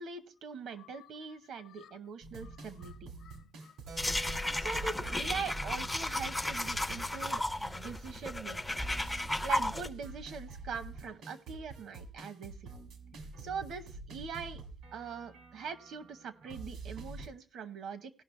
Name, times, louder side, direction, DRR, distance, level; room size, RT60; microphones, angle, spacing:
voice 1, 0.0-3.1 4.5-8.8 9.4-12.7 13.4-14.6 14.9-18.1, right 5 dB, 70° right, 0.9 m, -42 dB
voice 2, 0.8-1.9 2.4-4.5, left 11 dB, 75° left, 0.4 m, -60 dB
sound 1, 2.2-17.3, right 3 dB, 85° right, 1.7 m, -48 dB
Keyboard (musical), 3.9-7.9, right 4 dB, 50° right, 0.6 m, -52 dB
sound 2, 4.0-9.9, left 1 dB, 10° left, 0.4 m, -34 dB
17.0 x 5.9 x 3.1 m
cardioid pair, 170°, 0 cm